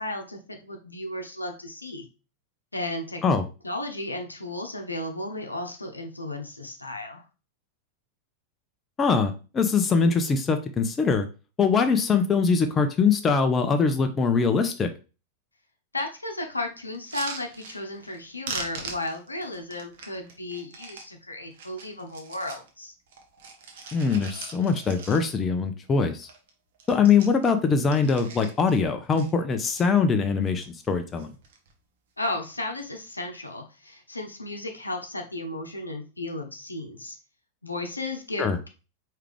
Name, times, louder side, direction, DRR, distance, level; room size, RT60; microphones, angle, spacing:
voice 1, 0.0-2.1 2.7-3.2 3.6-7.2 15.9-22.9 32.2-37.2 37.6-38.7, left 2 dB, 85° left, 4 dB, 0.8 m, -34 dB
voice 2, 9.0-11.3 11.6-14.9 23.9-26.3 26.9-31.3 38.4-38.6, left 5 dB, 20° left, 6 dB, 0.6 m, -22 dB
sound 1, 16.9-18.2 18.4-21.1 21.5-22.7 23.1-25.5 25.9-26.0 26.2-26.5 26.7-28.8 29.1-29.8 30.4-30.9 31.2-31.7 32.5-32.8, right 4 dB, 55° right, 1.0 m, -41 dB
4.7 x 3.3 x 3.3 m, 0.32 s
figure-of-eight pair, 90°, 0 cm